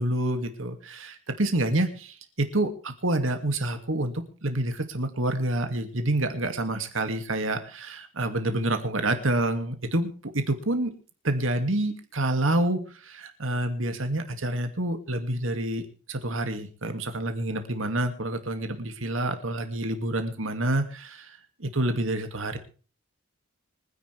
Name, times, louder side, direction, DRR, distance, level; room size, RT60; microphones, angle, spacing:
voice 1, 0.0-10.9 11.2-22.6, right 1 dB, 70° right, 7 dB, 2.5 m, -28 dB
25.5 x 10.0 x 3.5 m, 0.38 s
head